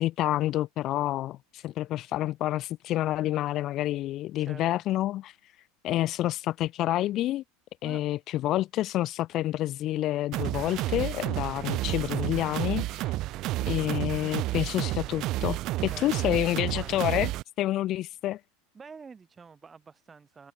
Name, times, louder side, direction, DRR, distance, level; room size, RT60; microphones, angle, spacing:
voice 1, 0.0-5.3 5.8-7.4 7.8-13.1 13.7-17.3 17.6-18.4, left 14 dB, 50° left, 0.7 m, -28 dB
voice 2, 4.4-4.7 7.8-8.0 15.9-17.0 18.7-20.5, right 5 dB, 20° right, 3.2 m, -48 dB
sound 1, 10.3-17.4, right 17 dB, 50° right, 0.3 m, -31 dB
supercardioid pair, 110°, 0 cm